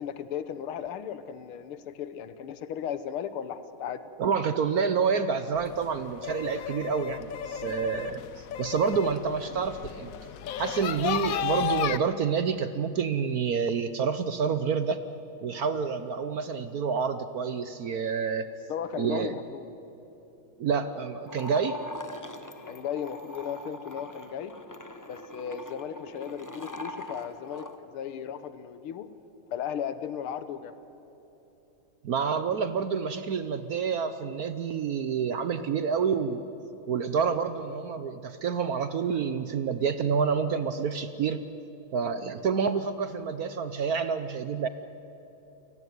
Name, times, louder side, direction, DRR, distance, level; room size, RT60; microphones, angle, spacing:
voice 1, 0.0-4.0 18.7-19.7 22.7-24.6 25.1-29.1 29.5-30.8, left 8 dB, 90° left, 12 dB, 1.9 m, -36 dB
voice 2, 4.2-10.1 10.6-15.0 15.4-18.5 19.0-19.4 20.6-21.8 32.0-36.4 36.9-41.4 41.9-44.7, right 6 dB, 60° right, 11 dB, 1.0 m, -28 dB
sound 1, 5.6-12.0, left 10 dB, 70° left, 0.8 m, -33 dB
sound 2, 21.2-27.8, left 1 dB, 20° left, 0.5 m, -42 dB
29.0 x 18.0 x 9.4 m, 3.0 s
omnidirectional pair, 2.3 m